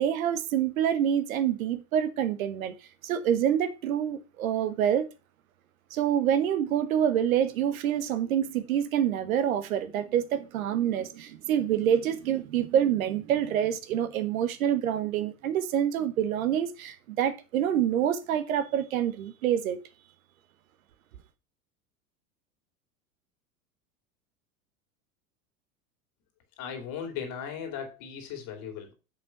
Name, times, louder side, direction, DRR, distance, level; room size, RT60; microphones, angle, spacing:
voice 1, 0.0-2.7 3.0-5.0 5.9-19.8, right 9 dB, 60° right, 1.1 m, -26 dB
voice 2, 26.6-28.9, left 7 dB, 45° left, 2.9 m, -37 dB
6.9 x 5.6 x 5.8 m
figure-of-eight pair, 85°, 46 cm